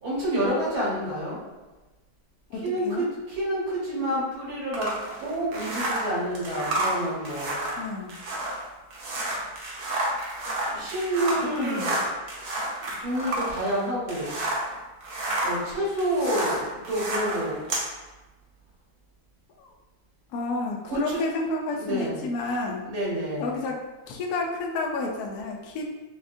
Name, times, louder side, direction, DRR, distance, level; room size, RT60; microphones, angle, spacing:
voice 1, 0.0-1.4 2.6-4.9 5.2-7.5 10.7-12.0 12.8-14.4 15.4-17.6 20.9-21.2 21.8-22.2 22.9-23.6, right 1 dB, 90° right, -7 dB, 2.1 m, -28 dB
voice 2, 2.5-3.1 7.8-8.1 11.6-11.9 16.2-16.5 19.6-19.7 20.3-22.8 23.4-23.8 24.1-25.9, left 3 dB, 70° left, 0 dB, 0.9 m, -30 dB
sound 1, 4.7-14.7 15.0-17.9, right 1 dB, 60° right, 1.0 m, -30 dB
5.6 x 2.4 x 2.6 m, 1.1 s
omnidirectional pair, 2.1 m